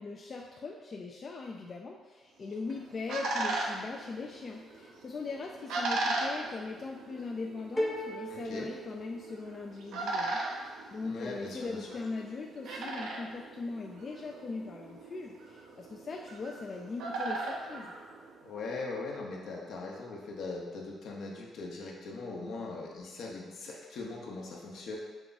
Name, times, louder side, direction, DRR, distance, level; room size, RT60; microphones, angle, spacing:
voice 1, 0.0-17.9, left 3 dB, 45° left, 0 dB, 0.3 m, -40 dB
sound 1, 2.4-18.7, right 2 dB, 80° right, 0.6 m, -38 dB
sound 2, 7.8-9.8, equal, 5° left, 0.8 m, -36 dB
voice 2, 8.3-8.7 11.0-11.9 18.4-25.0, left 3 dB, 75° left, -2 dB, 0.8 m, -40 dB
4.8 x 2.3 x 4.0 m, 1.3 s
cardioid pair, 90°, 0 cm